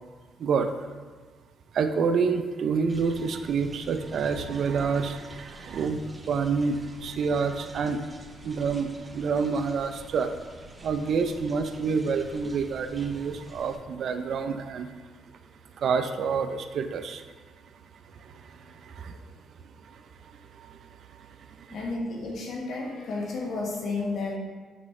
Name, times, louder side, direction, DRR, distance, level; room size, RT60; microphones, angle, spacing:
voice 1, 0.4-0.9 1.7-8.2 8.4-10.3 10.8-15.1 15.7-17.2 17.6-19.3 19.6-21.8, right 5 dB, 65° right, 8 dB, 0.5 m, -29 dB
sound 1, 2.9-13.8, right 1 dB, 20° right, 0.7 m, -48 dB
voice 2, 21.7-24.4, left 3 dB, 65° left, -1 dB, 1.3 m, -32 dB
6.1 x 5.0 x 3.2 m, 1.5 s
cardioid pair, 90°, 0 cm